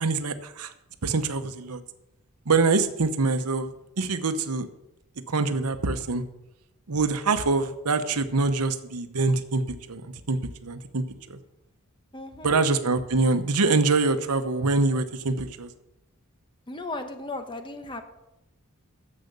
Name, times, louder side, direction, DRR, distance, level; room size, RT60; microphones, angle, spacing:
voice 1, 0.0-0.7 1.0-1.8 2.5-3.7 4.0-4.7 5.3-6.2 6.9-9.6 9.9-11.4 12.4-15.7, right 3 dB, 90° right, 10 dB, 0.9 m, -25 dB
voice 2, 12.1-12.6 16.7-18.0, left 2 dB, 20° left, 7 dB, 1.0 m, -36 dB
10.5 x 7.6 x 6.7 m, 0.89 s
head